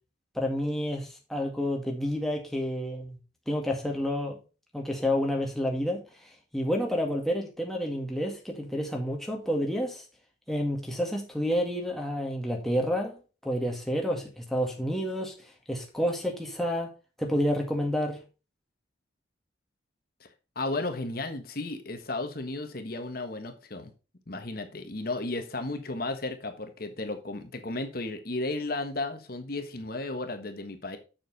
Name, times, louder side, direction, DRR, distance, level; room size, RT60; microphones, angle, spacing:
voice 1, 0.4-3.2 3.5-4.4 4.7-10.0 10.5-13.2 13.4-15.3 15.7-16.9 17.2-18.2, equal, ahead, 0 dB, 1.9 m, -29 dB
voice 2, 20.5-23.9 24.3-31.0, left 2 dB, 50° left, 7 dB, 1.4 m, -34 dB
7.3 x 7.0 x 4.1 m, 0.32 s
head